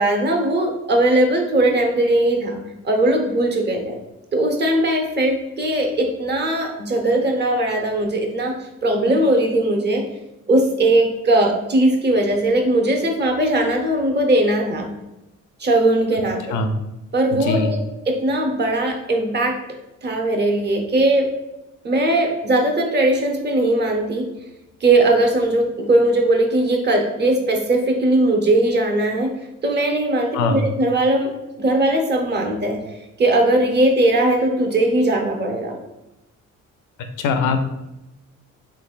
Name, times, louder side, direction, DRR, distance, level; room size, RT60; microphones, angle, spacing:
voice 1, 0.0-2.6 2.8-4.0 4.3-8.5 8.8-10.0 10.5-14.9 15.6-16.6 17.1-17.8 18.1-19.6 20.0-21.3 21.8-24.3 24.8-29.3 29.6-31.3 31.6-32.8 33.2-35.8, right 1 dB, 35° right, 3 dB, 0.8 m, -19 dB
voice 2, 17.4-17.7 30.3-30.7 37.2-37.6, left 3 dB, 90° left, 7 dB, 0.5 m, -21 dB
3.6 x 3.3 x 2.4 m, 0.93 s
cardioid pair, 90°, 30 cm